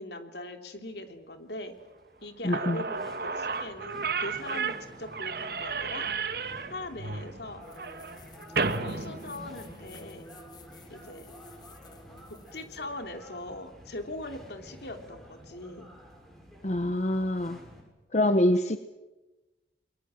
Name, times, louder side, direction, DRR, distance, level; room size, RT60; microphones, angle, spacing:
voice 1, 0.0-1.8 2.2-6.1 6.7-7.6 8.8-10.2 10.9-11.3 12.3-15.9, left 2 dB, 70° left, 6 dB, 3.1 m, -41 dB
sound 1, 0.8-17.8, equal, ahead, 6.9 m, -51 dB
Slam / Squeak, 2.2-2.3 2.5-10.0, right 4 dB, 55° right, 1.6 m, -33 dB
voice 2, 2.4-2.8 16.6-17.6 18.1-18.8, left 1 dB, 40° left, 9 dB, 1.0 m, -25 dB
sound 2, 7.6-12.8, left 1 dB, 25° left, 1.5 m, -49 dB
29.5 x 22.5 x 7.7 m, 1.1 s
head